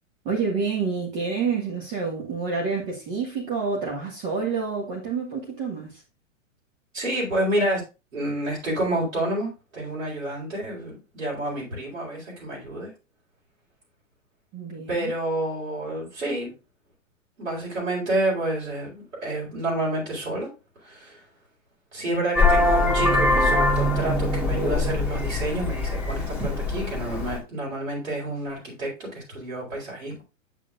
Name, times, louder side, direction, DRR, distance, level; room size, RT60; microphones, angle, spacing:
voice 1, 0.2-6.0 14.5-15.1, right 5 dB, 30° right, 1.6 m, -28 dB
voice 2, 6.9-7.8 8.1-12.9 14.9-16.5 17.4-20.5 20.8-21.2 21.9-30.2, right 1 dB, 75° right, 4.3 m, -29 dB
Vehicle horn car horn honking, 22.4-27.4, left 2 dB, 5° right, 2.0 m, -23 dB
8.3 x 7.1 x 2.5 m
figure-of-eight pair, 105°, 39 cm